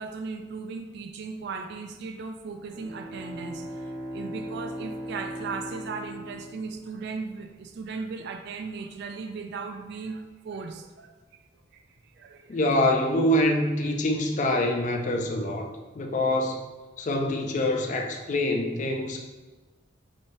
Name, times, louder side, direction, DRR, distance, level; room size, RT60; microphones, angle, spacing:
voice 1, 0.0-11.2 11.7-11.8 12.2-12.6, right 4 dB, 60° right, 0.3 m, -37 dB
Bowed string instrument, 2.6-7.3, equal, 25° right, 0.7 m, -39 dB
voice 2, 12.5-15.7 15.9-16.6 17.0-19.3, left 1 dB, 40° left, 0.4 m, -25 dB
3.1 x 2.7 x 4.1 m
head